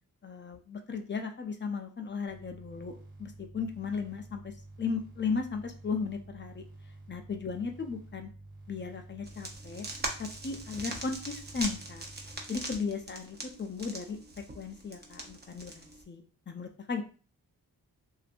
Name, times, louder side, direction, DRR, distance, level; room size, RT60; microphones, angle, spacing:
voice 1, 0.2-6.6 7.1-8.3 8.7-9.9 10.2-12.0 12.5-14.2 14.5-17.0, left 5 dB, 30° left, 4 dB, 0.5 m, -36 dB
sound 1, 2.3-12.4, right 2 dB, 85° right, 0.9 m, -50 dB
sound 2, 9.3-16.0, right 2 dB, 25° right, 0.6 m, -41 dB
2.5 x 2.2 x 2.4 m, 0.37 s
cardioid pair, 70°, 37 cm